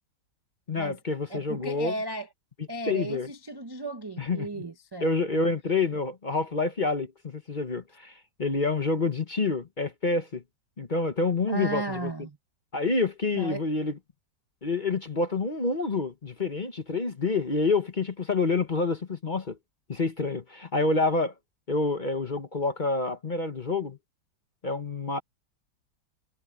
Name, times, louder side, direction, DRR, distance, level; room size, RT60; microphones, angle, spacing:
voice 1, 0.7-1.9 2.9-3.3 4.2-4.6 5.0-10.4 10.8-12.1 12.7-14.0 14.6-19.6 19.9-21.3 21.7-24.0 24.6-25.2, left 3 dB, 30° left, 1.1 m, -28 dB
voice 2, 1.3-2.3 2.7-5.4 11.5-12.4 13.3-13.6, right 2 dB, 25° right, 0.6 m, -35 dB
omnidirectional pair, 1.9 m